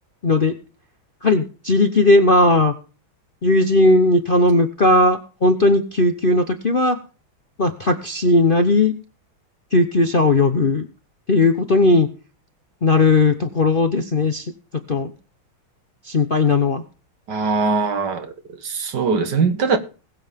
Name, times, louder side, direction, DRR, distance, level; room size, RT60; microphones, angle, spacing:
voice 1, 0.2-0.5 1.2-2.7 3.4-7.0 7.6-8.9 9.7-10.9 11.3-12.1 12.8-14.5 14.9-15.1 16.1-16.8, left 2 dB, 40° left, 0.7 m, -17 dB
voice 2, 17.3-19.8, right 4 dB, 55° right, 2.1 m, -21 dB
20.5 x 7.7 x 3.6 m
omnidirectional pair, 2.2 m